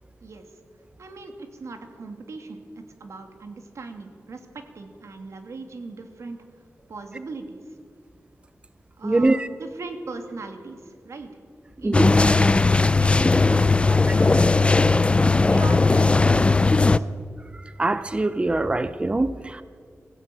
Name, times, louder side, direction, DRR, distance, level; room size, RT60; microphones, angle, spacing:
voice 1, 1.0-6.4 6.9-7.7 9.0-11.3 11.8-12.7 13.0-14.8 15.5-17.1, right 3 dB, 85° right, 5 dB, 2.7 m, -39 dB
voice 2, 9.0-9.5 11.8-12.1 17.8-19.6, right 2 dB, 20° right, 13 dB, 0.6 m, -23 dB
sound 1, 11.9-17.0, left 3 dB, 25° left, 0.5 m, -18 dB
23.5 x 15.0 x 9.3 m, 2.1 s
wide cardioid pair, 130°, 5 cm